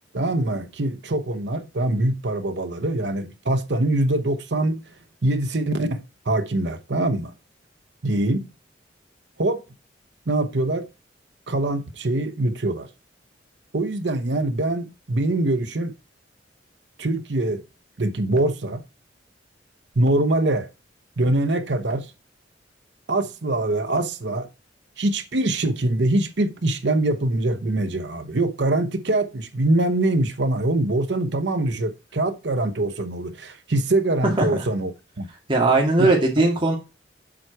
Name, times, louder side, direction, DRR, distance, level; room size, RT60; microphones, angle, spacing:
voice 1, 0.1-4.8 5.2-7.3 8.0-8.5 9.4-9.6 10.3-10.9 11.5-12.9 13.7-15.9 17.0-17.6 18.0-18.8 20.0-20.7 21.2-22.1 23.1-24.5 25.0-34.9 35.2-35.3 36.0-36.5, right 2 dB, 65° right, 0.9 m, -23 dB
voice 2, 35.5-36.8, right 2 dB, 30° right, 1.9 m, -18 dB
7.5 x 4.7 x 4.5 m
head